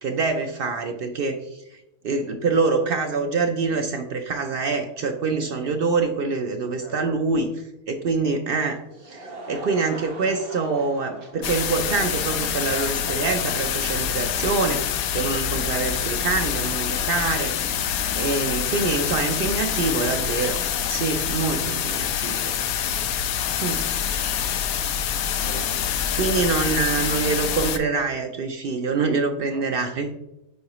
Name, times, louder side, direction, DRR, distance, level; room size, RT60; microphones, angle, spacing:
voice 1, 0.0-14.8 15.1-17.5 18.1-20.6 20.9-22.6 23.6-23.9 26.1-30.1, right 4 dB, 75° right, 5 dB, 0.5 m, -25 dB
Laughter / Crowd, 8.9-15.0, right 2 dB, 45° right, 1.3 m, -42 dB
sound 1, 11.4-27.8, left 9 dB, 80° left, 1.1 m, -26 dB
voice 2, 25.4-26.6 29.5-29.9, left 1 dB, 40° left, 0 dB, 1.2 m, -43 dB
9.4 x 3.9 x 2.9 m, 0.92 s
omnidirectional pair, 1.5 m